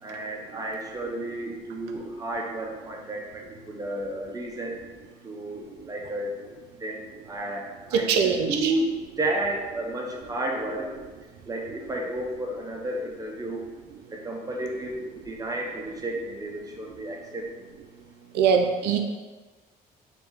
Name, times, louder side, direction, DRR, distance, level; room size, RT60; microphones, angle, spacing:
voice 1, 0.0-4.8 5.2-6.4 6.8-8.9 9.2-10.9 11.5-13.7 14.1-17.5, right 1 dB, 20° right, 0 dB, 0.6 m, -32 dB
voice 2, 7.9-8.7 18.3-19.0, right 6 dB, 80° right, 4 dB, 0.5 m, -22 dB
3.4 x 2.7 x 3.4 m, 1.3 s
cardioid pair, 110°, 17 cm